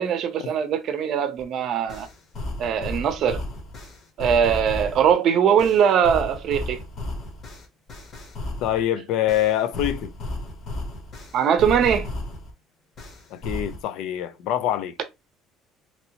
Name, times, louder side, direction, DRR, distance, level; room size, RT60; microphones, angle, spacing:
voice 1, 0.0-2.1 2.6-3.4 4.2-6.8 11.3-12.1, right 8 dB, 50° right, 0.6 m, -21 dB
sound 1, 1.4-1.5 1.9-5.1 5.6-8.8 9.3-12.5 13.0-13.8, left 1 dB, 40° left, 1.1 m, -34 dB
voice 2, 8.6-10.1 13.3-14.9, left 12 dB, 75° left, 0.4 m, -25 dB
2.9 x 2.7 x 2.9 m
cardioid pair, 140°, 0 cm